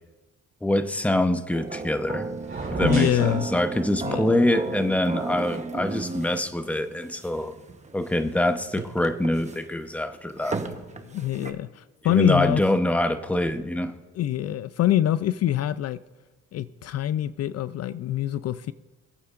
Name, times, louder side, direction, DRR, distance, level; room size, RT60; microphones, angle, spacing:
voice 1, 0.6-2.3 2.7-7.5 7.9-10.7 12.1-13.9, left 1 dB, 5° left, 9 dB, 0.8 m, -24 dB
sound 1, 1.5-11.5, right 3 dB, 25° right, 1.0 m, -34 dB
sound 2, 2.4-3.3, right 3 dB, 45° right, 3.7 m, -33 dB
voice 2, 2.8-3.5 4.0-4.3 11.0-12.6 14.1-16.0 16.5-18.7, left 12 dB, 55° left, 14 dB, 0.4 m, -25 dB
25.0 x 8.5 x 2.5 m, 1.2 s
cardioid pair, 90°, 30 cm